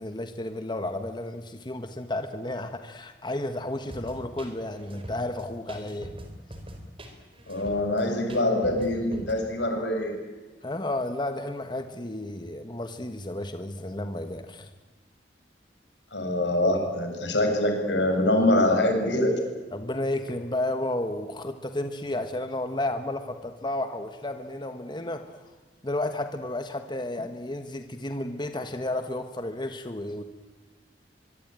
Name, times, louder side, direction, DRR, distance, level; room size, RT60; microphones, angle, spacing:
voice 1, 0.0-6.1 10.6-14.7 19.7-25.2 25.8-30.2, left 1 dB, 25° left, 8 dB, 1.4 m, -32 dB
sound 1, 3.9-9.4, equal, 30° right, 4.5 m, -43 dB
voice 2, 7.5-10.1 16.1-19.3, left 1 dB, 85° left, 3 dB, 7.2 m, -24 dB
24.5 x 23.5 x 9.0 m, 1.2 s
head